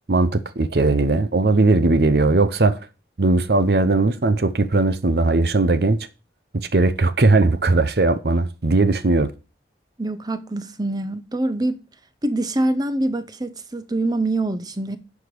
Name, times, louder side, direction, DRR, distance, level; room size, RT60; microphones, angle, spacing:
voice 1, 0.1-2.8 3.2-6.0 6.5-9.3, right 3 dB, 60° right, 0.7 m, -18 dB
voice 2, 10.0-11.8 12.2-15.0, right 2 dB, 20° right, 0.7 m, -24 dB
9.9 x 4.9 x 6.8 m
head